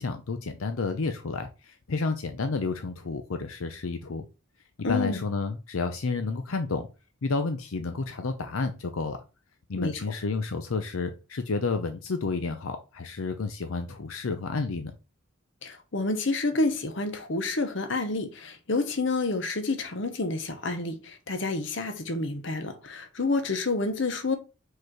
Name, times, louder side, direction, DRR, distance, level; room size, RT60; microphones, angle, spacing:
voice 1, 0.0-4.2 4.9-6.9 7.2-9.2 9.7-14.9, left 4 dB, 80° left, 0.6 m, -30 dB
voice 2, 4.8-5.2 9.8-10.0 15.6-24.4, left 3 dB, 60° left, 1.0 m, -29 dB
5.2 x 4.0 x 4.6 m
head